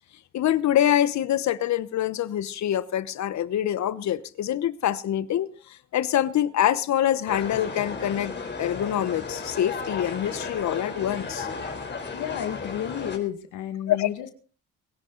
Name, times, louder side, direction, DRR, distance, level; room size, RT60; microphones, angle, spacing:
voice 1, 0.3-5.5 5.9-8.3 8.6-11.5 13.9-14.1, left 11 dB, 65° left, 1.1 m, -25 dB
sound 1, 7.3-13.2, left 4 dB, 35° left, 4.0 m, -34 dB
voice 2, 12.1-14.3, left 10 dB, 85° left, 2.1 m, -31 dB
22.5 x 11.0 x 4.0 m
cardioid pair, 90°, 30 cm